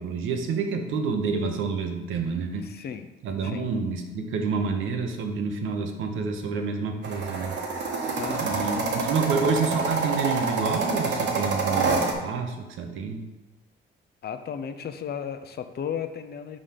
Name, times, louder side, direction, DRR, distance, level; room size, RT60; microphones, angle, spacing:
voice 1, 0.0-2.7 3.2-7.5 8.4-13.2, right 5 dB, 80° right, 4 dB, 0.9 m, -28 dB
voice 2, 2.6-3.1 3.4-3.7 8.2-8.7 14.2-16.6, left 8 dB, 55° left, 9 dB, 0.6 m, -34 dB
sound 1, 7.0-12.1, right 3 dB, 65° right, 1.1 m, -27 dB
4.9 x 3.8 x 5.7 m, 1.1 s
cardioid pair, 90°, 20 cm